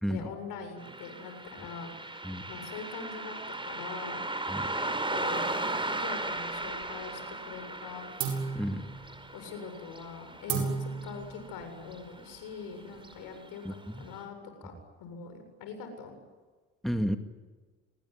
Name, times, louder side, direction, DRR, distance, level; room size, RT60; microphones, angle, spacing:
voice 1, 0.1-1.9 2.5-3.4 3.6-4.2 4.8-5.7 6.0-8.0 9.3-14.7 15.0-16.1, left 5 dB, 75° left, 7 dB, 7.7 m, -43 dB
Car passing by, 0.8-11.6 11.9-12.0 12.9-13.1 13.6-13.7 14.2-14.3, right 2 dB, 15° right, 4.8 m, -36 dB
sound 1, 6.2-7.1 7.4-7.8 8.2-13.3, right 5 dB, 80° right, 7.7 m, -37 dB
voice 2, 8.5-8.9 10.5-10.6 13.6-14.0 16.8-17.2, equal, ahead, 6 dB, 2.3 m, -32 dB
27.5 x 20.5 x 9.9 m, 1.4 s
supercardioid pair, 70°, 34 cm